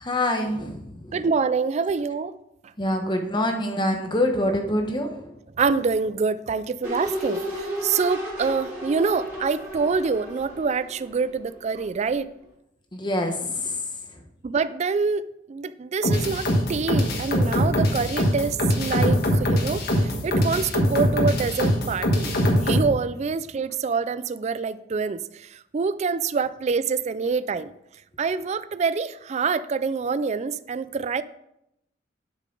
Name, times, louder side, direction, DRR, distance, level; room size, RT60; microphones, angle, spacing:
voice 1, 0.0-1.2 2.8-5.3 12.9-13.8, left 1 dB, 25° left, 4 dB, 1.1 m, -25 dB
voice 2, 1.1-2.4 5.6-12.3 14.4-22.3 22.6-27.7 28.2-31.2, right 5 dB, 35° right, 15 dB, 0.3 m, -26 dB
sound 1, 6.8-11.8 12.1-12.2, equal, 10° right, 3.7 m, -33 dB
sound 2, 16.0-22.9, equal, 55° left, 1.6 m, -22 dB
11.0 x 6.5 x 3.9 m, 0.81 s
head